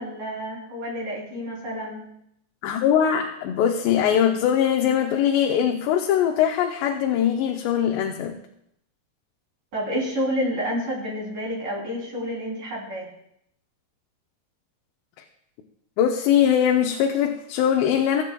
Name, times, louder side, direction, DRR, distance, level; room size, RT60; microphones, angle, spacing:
voice 1, 0.0-2.1 9.7-13.1, equal, 50° right, -3 dB, 4.8 m, -29 dB
voice 2, 2.6-8.4 16.0-18.2, left 9 dB, 90° left, 2 dB, 2.9 m, -21 dB
22.5 x 8.3 x 2.3 m, 0.75 s
omnidirectional pair, 4.8 m